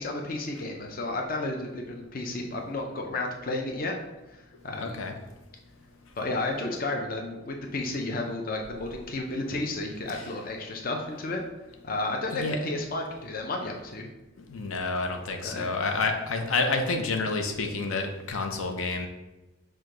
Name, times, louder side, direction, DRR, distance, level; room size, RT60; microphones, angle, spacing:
voice 1, 0.0-4.0 4.3-5.0 6.2-11.4 11.8-14.1 15.4-15.7, left 2 dB, 45° left, 2 dB, 0.5 m, -32 dB
voice 2, 4.8-5.1 10.1-10.2 12.3-12.6 14.5-19.1, left 3 dB, 85° left, 4 dB, 0.6 m, -29 dB
6.2 x 2.2 x 3.7 m, 1.1 s
head